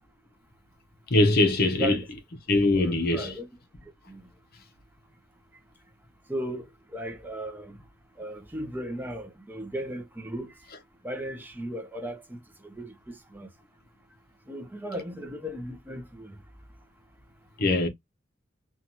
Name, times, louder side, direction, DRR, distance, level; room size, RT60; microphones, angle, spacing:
voice 1, 1.1-2.0 2.5-3.3 17.6-17.9, left 2 dB, 50° left, 0.6 m, -22 dB
voice 2, 1.7-2.1 2.7-3.5 4.1-4.2 6.3-6.6 6.9-7.8 8.2-10.5 11.0-12.4 12.6-13.5 14.5-16.3, right 1 dB, 10° right, 0.5 m, -36 dB
2.7 x 2.3 x 2.8 m
head